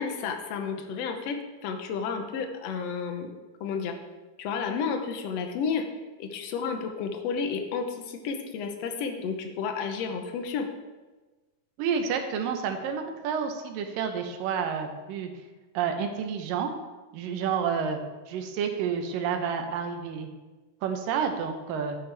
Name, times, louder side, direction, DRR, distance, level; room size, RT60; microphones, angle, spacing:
voice 1, 0.0-1.4 1.6-3.3 3.6-4.0 4.4-5.9 6.2-10.7, left 5 dB, 75° left, 5 dB, 1.5 m, -31 dB
voice 2, 11.8-15.3 15.7-16.7 17.1-18.0 18.3-20.3 20.8-22.0, right 7 dB, 80° right, 5 dB, 2.6 m, -29 dB
11.5 x 8.3 x 3.4 m, 1.2 s
omnidirectional pair, 4.0 m